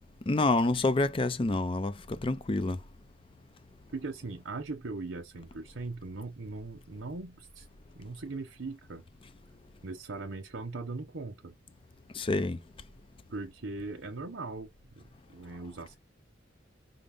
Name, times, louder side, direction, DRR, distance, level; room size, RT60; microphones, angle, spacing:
voice 1, 0.3-2.8 12.1-12.6, left 2 dB, 25° left, 0.5 m, -27 dB
voice 2, 3.9-7.7 7.9-9.0 9.8-11.5 13.3-14.7 14.9-15.1 15.3-16.0, right 3 dB, 75° right, 0.9 m, -39 dB
5.2 x 2.1 x 3.5 m
head